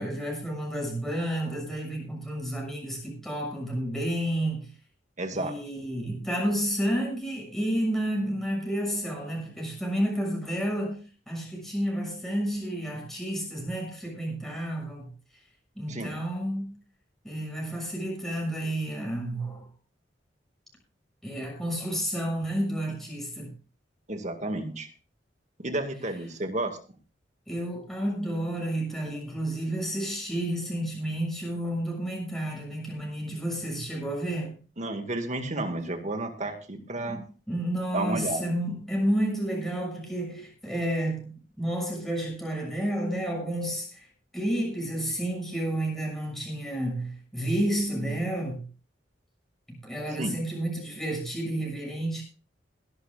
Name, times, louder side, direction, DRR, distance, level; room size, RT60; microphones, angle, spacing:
voice 1, 0.0-4.7 5.3-15.1 15.7-16.7 17.2-19.7 21.2-23.5 27.5-34.6 37.1-44.1 44.3-48.6 49.7-52.2, right 1 dB, ahead, 6.7 m, -31 dB
voice 2, 5.2-5.6 15.9-16.1 24.1-24.9 25.6-26.8 34.8-37.2 37.9-38.5 50.2-50.3, right 2 dB, 40° right, 1.9 m, -31 dB
21.5 x 12.0 x 2.5 m
head